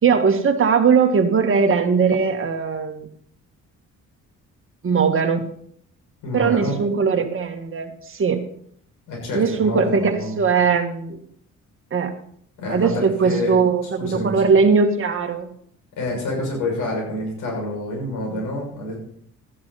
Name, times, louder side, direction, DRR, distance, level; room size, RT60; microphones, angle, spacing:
voice 1, 0.0-3.1 4.8-5.4 6.3-8.4 9.3-11.2 11.9-12.2 12.7-15.5 18.3-18.4, right 5 dB, 45° right, 5 dB, 1.9 m, -19 dB
voice 2, 6.2-6.8 9.1-10.4 12.6-14.4 16.0-19.0, left 1 dB, 85° left, -1 dB, 6.7 m, -28 dB
13.5 x 10.5 x 4.2 m, 0.64 s
cardioid pair, 90°, 30 cm